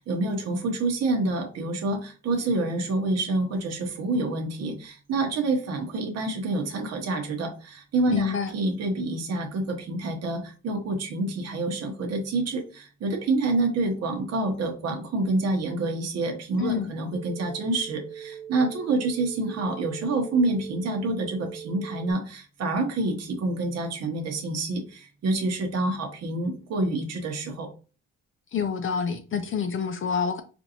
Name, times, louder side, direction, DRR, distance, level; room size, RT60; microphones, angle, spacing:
voice 1, 0.0-27.7, right 2 dB, 55° right, 0.9 m, -27 dB
voice 2, 8.1-8.5 16.6-16.9 28.5-30.4, left 6 dB, 45° left, 0.5 m, -27 dB
sound 1, 17.1-22.1, right 8 dB, 15° left, 0.8 m, -41 dB
4.4 x 2.6 x 2.8 m
cardioid pair, 90°, 30 cm